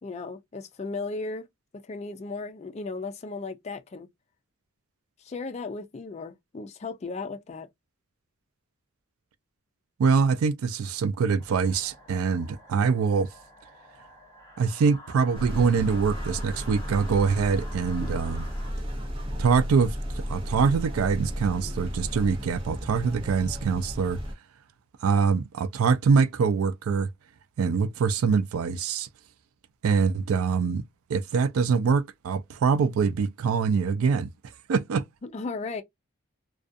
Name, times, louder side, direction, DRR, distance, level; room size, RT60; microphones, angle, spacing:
voice 1, 0.0-1.4 1.9-4.1 5.2-7.7 35.2-35.8, left 3 dB, 30° left, 0.3 m, -35 dB
voice 2, 10.0-13.3 14.6-18.5 19.4-20.0 20.3-24.2 25.0-27.1 27.6-29.1 29.8-30.8 31.1-34.3 34.7-35.0, right 5 dB, 85° right, 0.4 m, -24 dB
sound 1, 11.4-18.7, left 1 dB, 15° left, 0.7 m, -48 dB
sound 2, 15.3-24.3, equal, 25° right, 0.7 m, -34 dB
2.4 x 2.2 x 2.5 m
head